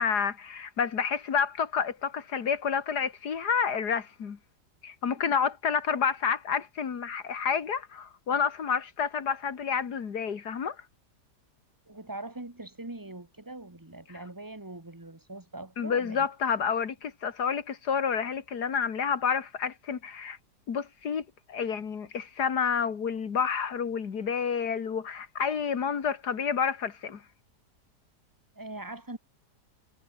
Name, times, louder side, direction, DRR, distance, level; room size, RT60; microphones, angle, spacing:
voice 1, 0.0-4.4 4.8-10.8 15.8-20.4 20.7-27.2, left 6 dB, 70° left, 2.4 m, -29 dB
voice 2, 11.9-16.3 28.6-29.2, right 2 dB, 10° right, 2.1 m, -42 dB
omnidirectional pair, 1.8 m